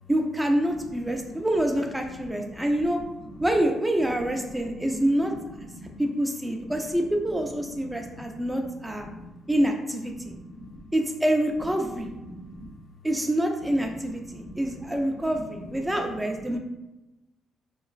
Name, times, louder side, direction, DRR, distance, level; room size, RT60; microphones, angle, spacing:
voice 1, 0.1-3.0 3.4-5.3 6.0-9.1 9.5-10.3 10.9-12.1 13.0-16.6, right 1 dB, 10° right, 3 dB, 0.3 m, -26 dB
voice 2, 4.3-4.9 5.7-6.0 6.6-6.7 7.9-8.7 8.9-9.3 10.1-10.8 12.1-12.7 14.2-14.9 15.2-15.7 15.9-16.0 16.5-16.6, left 1 dB, 50° left, 2 dB, 0.5 m, -43 dB
2.9 x 2.4 x 2.3 m, 0.99 s
cardioid pair, 90°, 0 cm